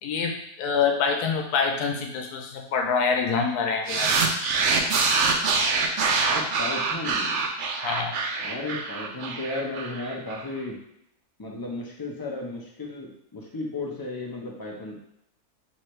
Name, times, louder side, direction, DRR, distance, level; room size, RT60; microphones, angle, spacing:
voice 1, 0.0-4.2 7.8-8.2, left 5 dB, 90° left, 3 dB, 1.2 m, -26 dB
sound 1, 3.9-10.4, right 4 dB, 65° right, 0.8 m, -25 dB
voice 2, 6.3-7.4 8.4-10.8 11.4-15.0, left 2 dB, 35° left, -2 dB, 0.3 m, -34 dB
3.4 x 3.2 x 4.5 m, 0.76 s
omnidirectional pair, 1.6 m